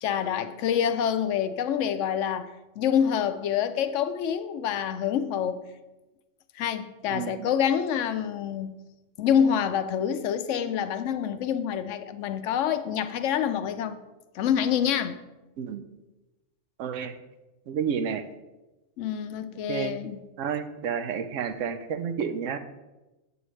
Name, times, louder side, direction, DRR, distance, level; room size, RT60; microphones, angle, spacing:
voice 1, 0.0-5.6 6.6-8.7 9.2-14.0 14.3-15.2 19.0-20.2, left 8 dB, 75° left, 0.9 m, -27 dB
voice 2, 7.1-7.5 15.6-15.8 16.8-17.1 17.7-18.3 19.7-19.9 20.4-22.6, right 7 dB, 80° right, 1.0 m, -30 dB
7.9 x 7.9 x 3.2 m
omnidirectional pair, 1.3 m